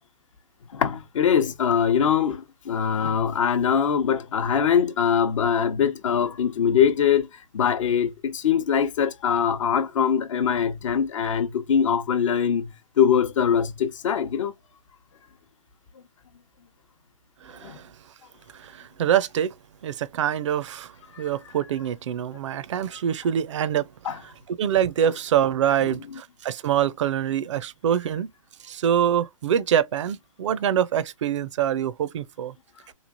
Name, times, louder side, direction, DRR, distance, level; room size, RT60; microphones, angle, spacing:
voice 1, 0.7-7.3 7.5-14.5 17.6-17.8 21.1-21.2 24.0-24.2, left 7 dB, 65° left, 0.7 m, -22 dB
voice 2, 17.4-17.8 18.5-19.5 19.8-20.9 21.2-23.9 24.5-28.3 28.6-32.5, right 9 dB, 60° right, 0.4 m, -25 dB
3.1 x 2.4 x 2.3 m
hypercardioid pair, 125°, 18 cm